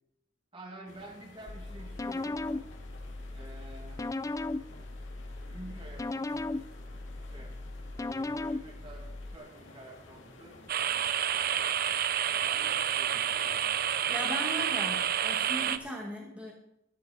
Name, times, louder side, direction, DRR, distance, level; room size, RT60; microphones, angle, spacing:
voice 1, 0.5-2.4 3.3-4.0 5.4-6.6 7.2-7.6 8.0-10.6 12.4-13.8, right 1 dB, 30° right, 1 dB, 2.3 m, -49 dB
sound 1, 0.9-15.9, left 2 dB, 80° left, 2.3 m, -53 dB
sound 2, 1.5-9.4, left 2 dB, 15° left, 0.3 m, -37 dB
sound 3, 10.7-15.8, right 9 dB, 50° right, 0.5 m, -29 dB
voice 2, 14.1-16.5, equal, 5° right, -2 dB, 1.9 m, -38 dB
14.0 x 10.5 x 4.2 m, 0.81 s
head